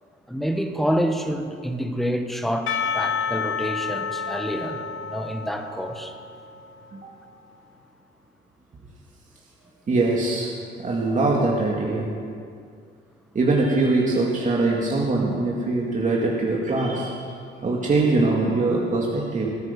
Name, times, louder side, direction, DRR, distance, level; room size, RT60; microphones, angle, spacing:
voice 1, 0.3-6.1, equal, ahead, 5 dB, 1.4 m, -27 dB
Percussion / Church bell, 2.7-7.1, left 6 dB, 75° left, 1.2 m, -30 dB
voice 2, 9.9-10.5 10.8-12.1 13.3-17.2 17.6-19.5, right 3 dB, 40° right, -3 dB, 2.3 m, -22 dB
21.5 x 9.3 x 5.3 m, 2.3 s
cardioid pair, 90°, 20 cm